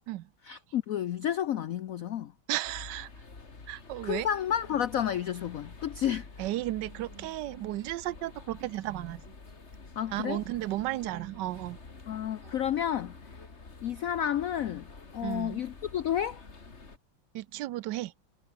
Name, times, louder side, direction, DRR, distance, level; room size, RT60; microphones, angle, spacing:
voice 1, 0.4-2.3 4.0-6.3 10.0-10.4 12.1-13.1 13.8-14.9 15.1-16.4, left 10 dB, 70° left, 0.8 m, -31 dB
voice 2, 2.5-3.1 3.7-4.3 6.4-9.3 10.1-11.8 12.4-12.5 15.2-15.6 17.3-18.1, right 16 dB, 70° right, 1.1 m, -34 dB
sound 1, 2.6-17.0, left 4 dB, 35° left, 2.7 m, -49 dB
omnidirectional pair, 2.2 m